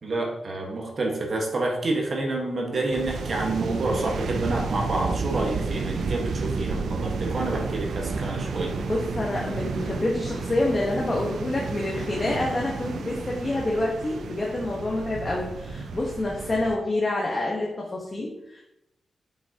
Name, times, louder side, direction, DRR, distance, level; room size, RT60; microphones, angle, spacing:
voice 1, 0.0-8.7, right 2 dB, 50° right, 0 dB, 1.5 m, -28 dB
sound 1, 2.9-16.8, right 4 dB, 80° right, 0.6 m, -31 dB
voice 2, 8.8-18.6, left 2 dB, 30° left, -3 dB, 1.3 m, -27 dB
8.4 x 5.8 x 2.9 m, 0.86 s
wide cardioid pair, 115°, 0 cm